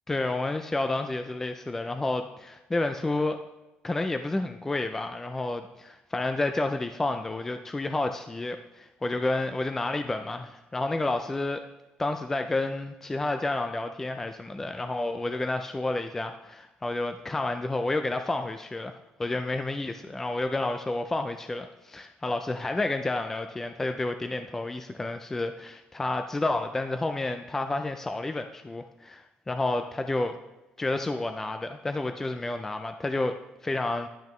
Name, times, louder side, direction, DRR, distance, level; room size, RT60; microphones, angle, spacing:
voice 1, 0.1-3.4 3.8-11.6 12.0-30.4 30.8-33.4 33.6-34.1, left 2 dB, 10° left, 6 dB, 0.3 m, -30 dB
11.0 x 5.2 x 3.1 m, 0.99 s
cardioid pair, 165°, 3 cm